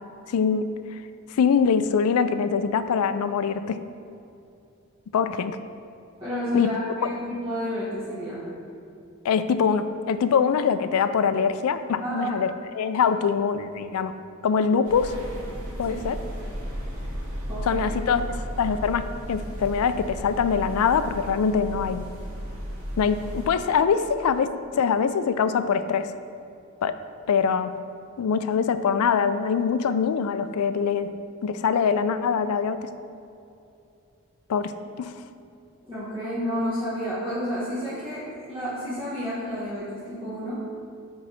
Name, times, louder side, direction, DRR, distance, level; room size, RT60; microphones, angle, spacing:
voice 1, 0.3-1.0 1.3-3.8 5.1-5.6 6.5-6.7 9.2-14.1 14.4-15.1 15.8-16.2 17.6-18.2 18.6-22.0 23.0-26.1 26.8-27.0 27.3-27.7 28.2-31.1 31.4-32.9 34.5-34.7 35.0-35.1, left 6 dB, 85° left, 11 dB, 0.3 m, -23 dB
voice 2, 6.2-8.4 12.0-12.3 15.9-16.0 17.5-17.8 35.9-40.6, equal, 25° right, -13 dB, 1.5 m, -30 dB
sound 1, 14.8-23.5, equal, 75° right, 1.4 m, -34 dB
4.9 x 4.6 x 5.6 m, 2.6 s
head